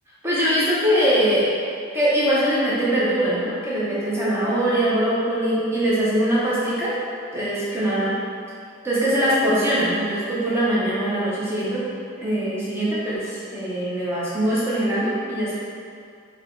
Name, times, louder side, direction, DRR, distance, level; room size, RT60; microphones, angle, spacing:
voice 1, 0.2-1.5 1.9-7.0 7.3-8.1 8.8-11.9 12.2-15.5, right 1 dB, 10° right, -8 dB, 0.6 m, -22 dB
3.1 x 2.3 x 3.6 m, 2.4 s
head